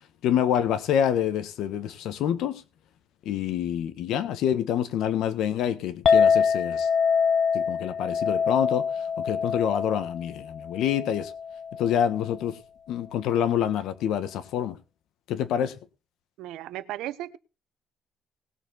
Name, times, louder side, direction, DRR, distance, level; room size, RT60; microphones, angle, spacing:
voice 1, 0.2-2.6 3.2-6.9 7.5-8.8 9.2-11.3 11.8-12.6 12.9-14.8 15.3-15.7, left 9 dB, 80° left, 1.5 m, -27 dB
Chink clink, 6.1-12.3, left 6 dB, 50° left, 0.8 m, -25 dB
voice 2, 16.4-17.4, right 14 dB, 90° right, 0.9 m, -35 dB
19.0 x 6.9 x 4.1 m
cardioid pair, 135°, 0 cm